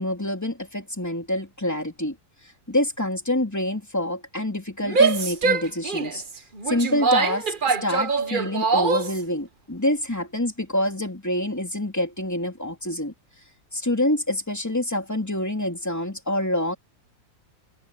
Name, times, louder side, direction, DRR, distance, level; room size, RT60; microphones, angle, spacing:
voice 1, 0.0-2.2 2.7-6.2 6.7-13.1 13.7-16.7, left 1 dB, 10° left, 2.9 m, -26 dB
Female speech woman speaking / Yell, 4.8-9.2, right 4 dB, 35° right, 1.0 m, -23 dB
omnidirectional pair, 2.0 m